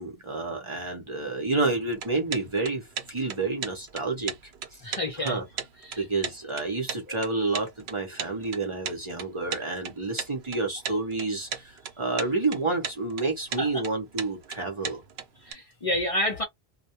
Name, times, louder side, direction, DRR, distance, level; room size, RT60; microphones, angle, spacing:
voice 1, 0.0-4.8 5.2-5.4 6.0-15.0, right 3 dB, 35° right, 0.7 m, -29 dB
sound 1, 1.9-15.5, right 7 dB, 80° right, 0.9 m, -36 dB
voice 2, 4.8-5.4 5.8-6.0 7.1-7.2 13.6-13.8 15.4-16.4, left 1 dB, 40° left, 0.6 m, -29 dB
2.2 x 2.2 x 2.7 m
omnidirectional pair, 1.0 m